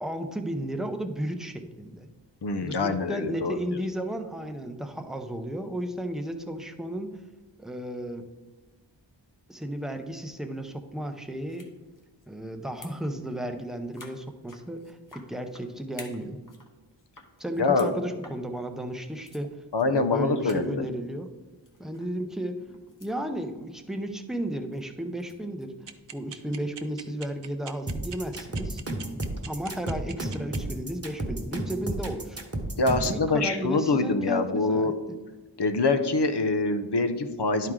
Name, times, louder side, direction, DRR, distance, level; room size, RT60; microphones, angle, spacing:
voice 1, 0.0-2.1 2.6-7.1 7.6-8.3 9.5-11.7 12.3-16.4 17.4-19.5 19.9-21.3 21.8-22.6 23.0-25.7 26.1-28.8 29.5-32.4 33.0-34.9, right 1 dB, ahead, 5 dB, 0.6 m, -34 dB
voice 2, 2.4-3.8 17.6-17.9 19.7-20.9 32.8-34.9 35.6-37.7, left 3 dB, 65° left, 8 dB, 0.7 m, -25 dB
sound 1, 11.5-11.7 12.0-12.2 12.6-13.2 13.4-13.5 13.9-15.6 15.9-16.7 17.0-17.9 18.2-18.4 18.9-19.0 19.3-19.4 19.8-19.9 20.2-20.3 20.4-20.7 21.6-22.1 22.5-23.2 23.5-23.8 24.7-25.6, left 2 dB, 45° left, 1.1 m, -49 dB
sound 2, 25.9-30.6, right 8 dB, 70° right, 0.6 m, -41 dB
sound 3, 27.9-33.2, right 1 dB, 30° right, 1.2 m, -32 dB
11.0 x 4.6 x 3.7 m, 1.2 s
wide cardioid pair, 55°, 45 cm